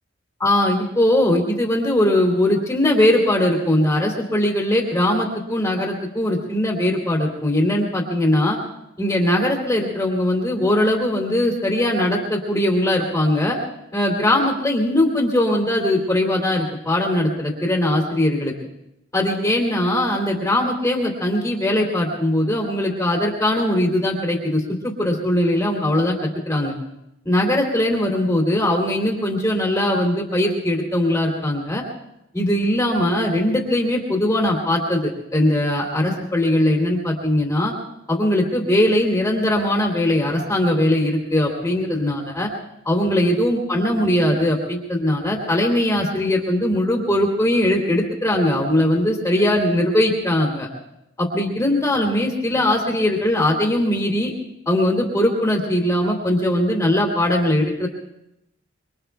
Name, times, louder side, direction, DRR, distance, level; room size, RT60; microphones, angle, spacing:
voice 1, 0.4-8.6 9.0-13.6 13.9-18.5 19.1-26.2 26.5-26.7 27.2-31.8 32.3-37.7 38.1-42.5 42.8-50.7 51.2-54.3 54.7-57.9, left 1 dB, 10° left, -4 dB, 2.7 m, -20 dB
25.0 x 24.5 x 2.3 m, 0.85 s
head